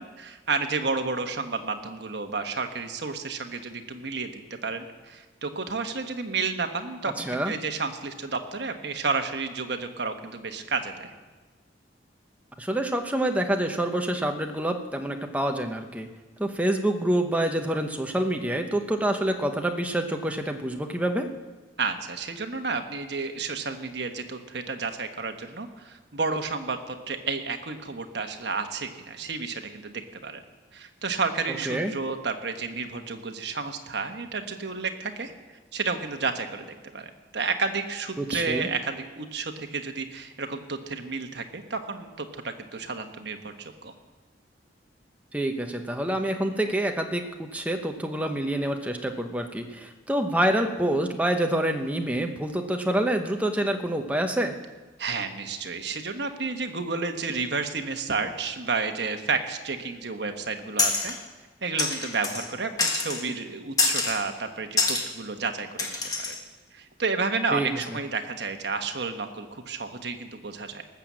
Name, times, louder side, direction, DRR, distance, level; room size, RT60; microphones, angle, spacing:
voice 1, 0.0-11.1 21.8-30.4 30.7-35.3 35.7-36.7 36.9-43.9 55.0-61.1 61.6-66.3 66.7-70.8, right 4 dB, 60° right, 6 dB, 1.2 m, -31 dB
voice 2, 12.6-16.1 16.4-21.3 31.7-31.9 38.2-38.7 45.3-54.5 67.5-67.7, right 1 dB, 10° right, 4 dB, 0.9 m, -27 dB
sound 1, 60.8-61.2 61.8-62.5 62.8-63.2 63.8-64.2 64.8-65.1 65.8-66.4, left 3 dB, 20° left, 1.4 m, -26 dB
19.0 x 6.9 x 7.5 m, 1.3 s
head